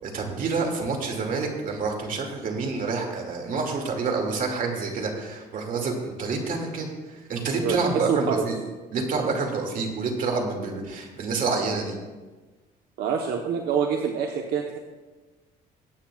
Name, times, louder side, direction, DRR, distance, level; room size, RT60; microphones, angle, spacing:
voice 1, 0.0-6.9 7.3-8.6 8.9-11.9, right 4 dB, 55° right, 2 dB, 2.4 m, -28 dB
voice 2, 7.6-8.4 13.0-14.8, right 7 dB, 70° right, 2 dB, 1.1 m, -26 dB
21.5 x 8.9 x 2.4 m, 1.3 s
cardioid pair, 110°, 17 cm